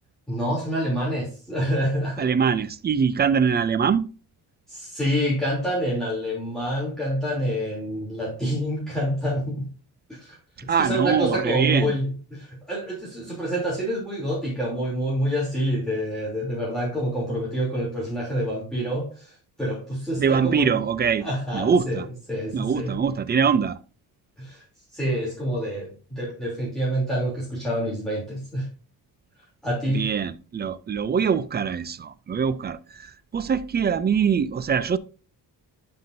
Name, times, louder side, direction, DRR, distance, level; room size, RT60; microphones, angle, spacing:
voice 1, 0.3-2.3 4.7-9.7 10.2-10.4 10.7-20.8 21.2-22.0 22.3-23.0 24.4-24.6 24.9-28.7 29.6-30.1, equal, ahead, 3.1 m, -27 dB
voice 2, 2.2-4.1 10.7-11.9 20.2-21.3 21.5-22.1 22.5-23.8 29.9-35.0, right 6 dB, 25° right, 0.4 m, -23 dB
11.5 x 5.6 x 2.6 m
cardioid pair, 140°, 40 cm